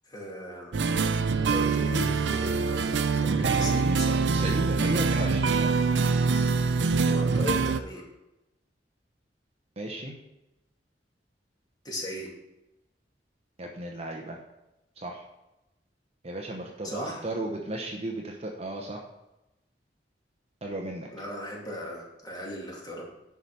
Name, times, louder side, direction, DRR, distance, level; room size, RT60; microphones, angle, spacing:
voice 1, 0.1-4.2 7.1-8.0 11.8-12.3 16.8-17.3 21.1-23.0, left 1 dB, 25° left, -3 dB, 2.3 m, -37 dB
sound 1, 0.7-7.8, right 4 dB, 85° right, 0.5 m, -24 dB
voice 2, 3.4-5.7 9.8-10.1 13.6-14.4 15.0-15.2 16.2-19.0 20.6-21.1, right 1 dB, 35° right, 1 dB, 0.9 m, -35 dB
10.0 x 4.9 x 5.5 m, 0.95 s
head